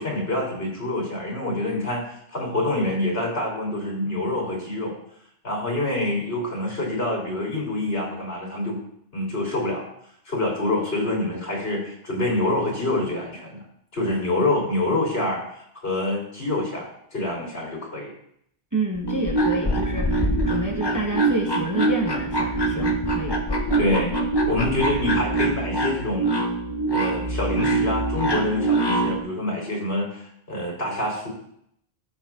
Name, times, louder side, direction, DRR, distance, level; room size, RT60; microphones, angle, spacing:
voice 1, 0.0-5.0 5.4-8.8 9.1-9.9 10.2-13.6 13.9-18.1 23.8-24.2 24.5-26.3 26.9-31.3, left 2 dB, 60° left, -1 dB, 3.3 m, -26 dB
voice 2, 18.7-23.4, right 2 dB, 20° right, -1 dB, 0.9 m, -29 dB
sound 1, 19.0-29.2, right 2 dB, 25° left, 0.8 m, -24 dB
14.5 x 6.3 x 2.4 m, 0.71 s
omnidirectional pair, 1.1 m